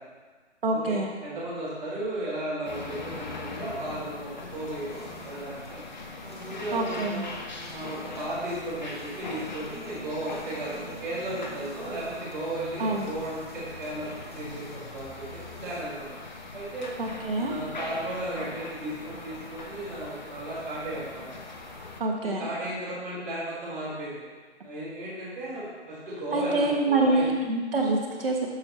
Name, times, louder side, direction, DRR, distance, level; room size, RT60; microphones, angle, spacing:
voice 1, 0.6-1.1 6.7-7.2 12.8-13.1 17.0-17.5 22.0-22.5 26.3-28.5, right 2 dB, 50° right, 0 dB, 1.5 m, -26 dB
voice 2, 1.2-5.8 6.2-7.3 7.7-16.2 16.5-16.9 17.3-21.3 22.2-24.2 24.6-27.3, right 1 dB, 5° right, -15 dB, 1.1 m, -35 dB
sound 1, 2.6-22.0, left 3 dB, 40° left, 0.9 m, -41 dB
sound 2, 4.4-15.8, equal, 20° left, 0.5 m, -47 dB
12.0 x 6.7 x 3.0 m, 1.4 s
hypercardioid pair, 175°, 36 cm